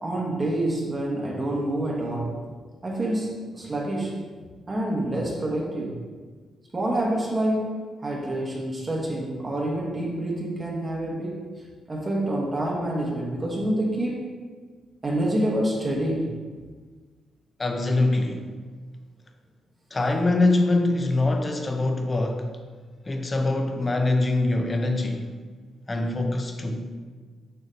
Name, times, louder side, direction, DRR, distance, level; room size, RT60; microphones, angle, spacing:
voice 1, 0.0-2.4 2.8-4.2 4.7-6.0 6.7-7.7 8.0-11.4 11.9-14.3 15.0-16.3, right 1 dB, 25° right, -3 dB, 1.0 m, -27 dB
voice 2, 17.6-18.5 19.9-22.5 23.1-25.3 25.9-26.9, left 2 dB, 25° left, 4 dB, 0.6 m, -23 dB
6.7 x 2.9 x 5.1 m, 1.5 s
cardioid pair, 125°, 0 cm